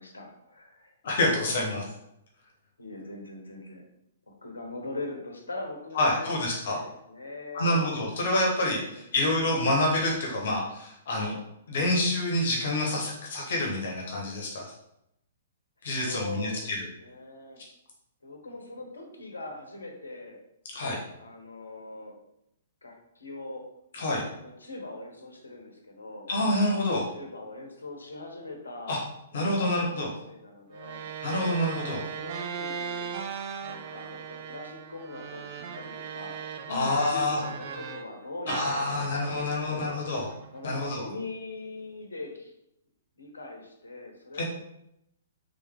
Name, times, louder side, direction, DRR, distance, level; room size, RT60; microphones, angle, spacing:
voice 1, 0.0-1.2 1.5-1.8 2.8-3.8 4.3-7.9 8.8-9.3 15.8-17.6 18.2-20.4 21.2-22.2 22.8-23.6 24.4-26.3 27.1-29.0 29.5-31.1 31.8-33.1 33.7-40.0 40.5-42.5 43.2-44.4, left 2 dB, 80° left, 2 dB, 0.9 m, -41 dB
voice 2, 1.0-1.8 5.9-6.8 7.5-11.4 11.7-14.7 15.8-16.8 20.7-21.0 23.9-24.2 26.3-27.1 28.9-29.0 29.3-30.1 31.2-32.0 36.7-37.4 38.5-40.3 40.6-41.1 44.3-44.4, left 1 dB, 60° left, -1 dB, 1.1 m, -27 dB
sound 1, 30.7-38.1 38.5-40.9, right 7 dB, 45° right, 0.4 m, -38 dB
3.8 x 3.4 x 3.5 m, 0.80 s
figure-of-eight pair, 115°, 0 cm